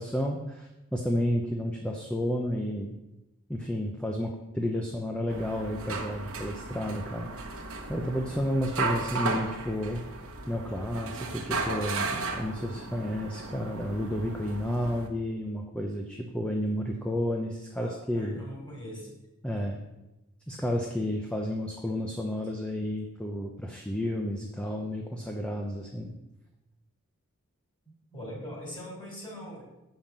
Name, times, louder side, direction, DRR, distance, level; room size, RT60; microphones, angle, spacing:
voice 1, 0.0-2.9 3.5-7.3 7.9-10.0 10.5-18.5 19.4-19.8 20.5-26.1, equal, 5° left, 0 dB, 0.7 m, -31 dB
sound 1, 5.3-15.1, right 3 dB, 70° right, 1.2 m, -35 dB
voice 2, 17.8-19.1 28.1-29.6, equal, 20° left, -2 dB, 3.6 m, -41 dB
7.0 x 5.8 x 7.3 m, 0.95 s
head